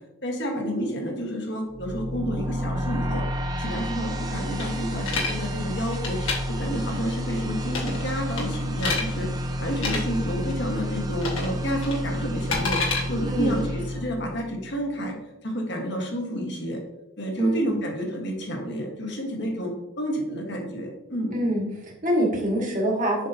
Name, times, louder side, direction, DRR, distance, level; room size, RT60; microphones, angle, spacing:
voice 1, 0.2-3.2 3.6-6.2 6.5-9.3 9.6-15.2 15.4-16.8 17.2-21.3, equal, 55° left, 1 dB, 1.4 m, -30 dB
sound 1, 1.7-14.8, equal, 20° right, 0.6 m, -30 dB
sound 2, 4.6-5.3 5.9-6.4 7.7-8.0 8.4-9.0 9.7-10.0 11.2-11.5 11.8-13.0, left 4 dB, 80° left, 1.6 m, -28 dB
voice 2, 13.3-13.6 17.4-17.8 21.3-23.3, right 1 dB, 40° right, -1 dB, 1.6 m, -25 dB
7.4 x 5.6 x 2.8 m, 0.93 s
head